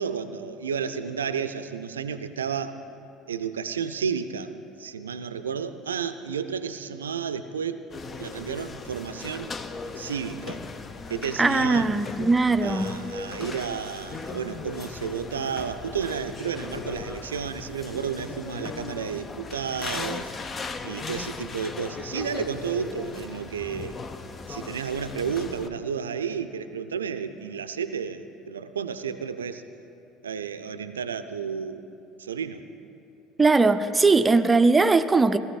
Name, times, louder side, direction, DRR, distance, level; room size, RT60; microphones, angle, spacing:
voice 1, 0.0-2.7 3.3-7.8 8.2-9.5 10.0-10.6 11.1-12.1 12.6-20.3 20.8-24.0 24.5-29.6 30.2-31.8 32.2-32.6, right 7 dB, 80° right, 12 dB, 0.5 m, -32 dB
sound 1, 7.9-25.7, left 4 dB, 30° left, 0.7 m, -38 dB
voice 2, 11.4-12.9 33.4-35.4, right 3 dB, 20° right, 11 dB, 0.6 m, -20 dB
18.0 x 14.0 x 4.0 m, 2.8 s
figure-of-eight pair, 65°, 0 cm